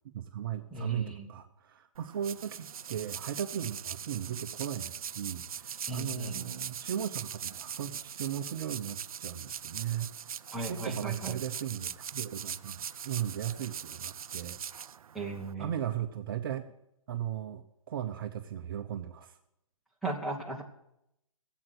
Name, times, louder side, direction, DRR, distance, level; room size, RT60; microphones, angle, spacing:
voice 1, 0.1-10.1 10.6-14.6 15.6-16.6 17.1-19.4, right 10 dB, 40° right, 6 dB, 0.7 m, -37 dB
voice 2, 0.7-1.3 5.8-6.4 10.5-11.4 15.1-15.7 20.0-20.7, right 2 dB, ahead, -4 dB, 1.3 m, -37 dB
sound 1, 1.9-15.5, right 8 dB, 85° right, 0.5 m, -41 dB
14.5 x 8.0 x 7.9 m, 0.81 s
hypercardioid pair, 160°, 18 cm